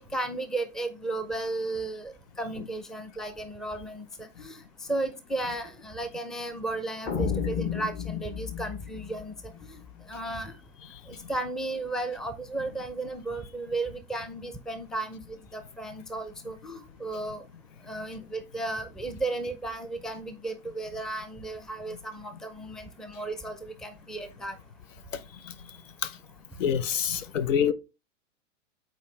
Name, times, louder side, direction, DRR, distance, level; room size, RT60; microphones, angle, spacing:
voice 1, 0.1-4.6 4.9-9.8 10.1-10.5 11.1-17.4 17.9-24.6, right 2 dB, ahead, 0.5 m, -34 dB
sound 1, 7.1-10.2, left 7 dB, 30° left, 0.9 m, -32 dB
voice 2, 25.1-25.5 26.0-26.2 26.6-27.7, left 8 dB, 75° left, 0.8 m, -27 dB
8.1 x 4.5 x 3.2 m
hypercardioid pair, 110°, 39 cm